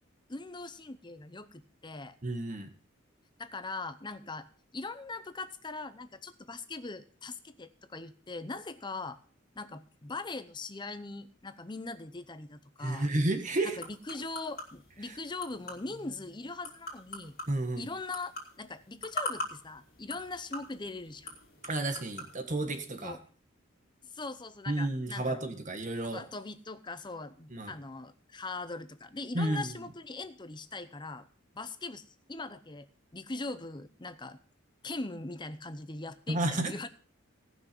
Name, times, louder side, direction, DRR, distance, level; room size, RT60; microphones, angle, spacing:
voice 1, 0.3-2.2 3.4-4.5 4.7-9.2 9.6-13.1 13.6-17.4 17.8-21.3 23.0-23.2 24.1-25.4 26.1-31.3 31.5-32.9 33.1-34.4 34.8-36.9, left 3 dB, 20° left, 11 dB, 0.7 m, -41 dB
voice 2, 2.2-2.7 12.8-13.8 15.0-15.1 17.5-17.9 21.6-23.2 24.7-26.2 27.5-27.7 29.3-29.7 36.3-36.7, right 2 dB, 40° right, 7 dB, 1.7 m, -31 dB
sound 1, 12.9-22.3, left 1 dB, 50° left, 3.0 m, -43 dB
18.0 x 6.1 x 5.3 m, 0.43 s
head